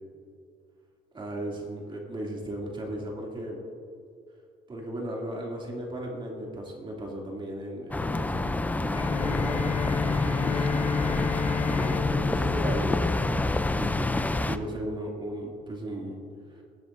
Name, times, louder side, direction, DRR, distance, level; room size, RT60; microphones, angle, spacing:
voice 1, 1.1-3.6 4.7-10.7 11.7-13.3 13.6-16.2 16.5-16.6, right 1 dB, 30° right, -2 dB, 2.6 m, -36 dB
sound 1, 7.9-14.6, left 2 dB, 10° left, 0.5 m, -27 dB
Bowed string instrument, 8.9-13.9, left 6 dB, 35° left, 0.8 m, -31 dB
21.0 x 7.7 x 2.6 m, 2.3 s
cardioid pair, 110°, 17 cm